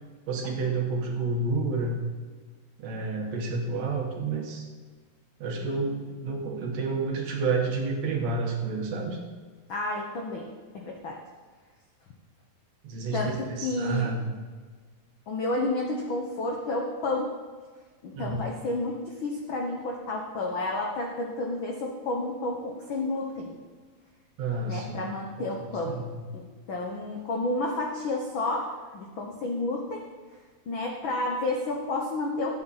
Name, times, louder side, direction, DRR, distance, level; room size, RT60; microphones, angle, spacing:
voice 1, 0.3-2.0 2.8-4.7 5.4-9.2 12.8-14.4 18.1-18.4 24.4-25.1 25.4-26.2, right 3 dB, 60° right, 1 dB, 2.3 m, -30 dB
voice 2, 9.7-10.5 10.7-11.2 13.1-14.1 15.3-17.4 18.0-23.5 24.7-26.0 26.3-30.0 30.7-32.6, left 2 dB, 85° left, 0 dB, 1.0 m, -31 dB
13.5 x 8.4 x 4.1 m, 1.5 s
omnidirectional pair, 3.8 m